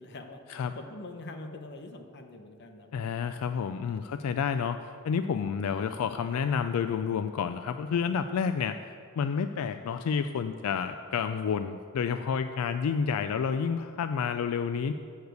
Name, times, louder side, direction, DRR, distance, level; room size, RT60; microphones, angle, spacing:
voice 1, 0.0-0.4 0.8-3.0, left 2 dB, 55° left, 5 dB, 0.8 m, -44 dB
voice 2, 2.9-14.9, left 6 dB, 80° left, 10 dB, 0.3 m, -30 dB
7.0 x 6.6 x 7.9 m, 2.3 s
head